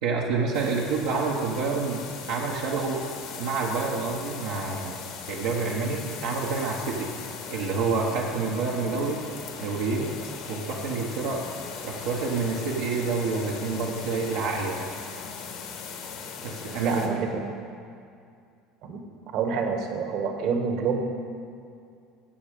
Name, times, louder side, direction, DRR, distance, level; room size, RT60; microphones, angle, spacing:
voice 1, 0.0-5.0 5.3-7.1 7.5-9.2 9.6-10.2 10.5-11.5 11.8-14.8 16.4-17.2, right 4 dB, 80° right, -3 dB, 1.1 m, -28 dB
sound 1, 0.5-17.1, left 6 dB, 70° left, 1.6 m, -39 dB
voice 2, 16.8-17.5 18.8-19.0 19.3-21.0, right 5 dB, 65° right, 4 dB, 1.4 m, -27 dB
16.0 x 6.5 x 5.0 m, 2.4 s
supercardioid pair, 90°, 0 cm